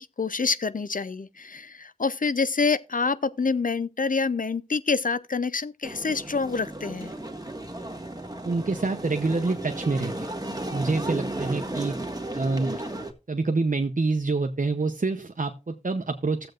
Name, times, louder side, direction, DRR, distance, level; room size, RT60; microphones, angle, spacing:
voice 1, 0.0-7.1, left 4 dB, 70° left, 0.6 m, -27 dB
sound 1, 5.8-13.1, right 1 dB, 25° right, 1.7 m, -34 dB
voice 2, 8.4-10.3 10.7-12.0 12.3-12.8 13.3-16.5, right 3 dB, 65° right, 0.8 m, -27 dB
15.0 x 7.8 x 2.5 m
wide cardioid pair, 50°, 15 cm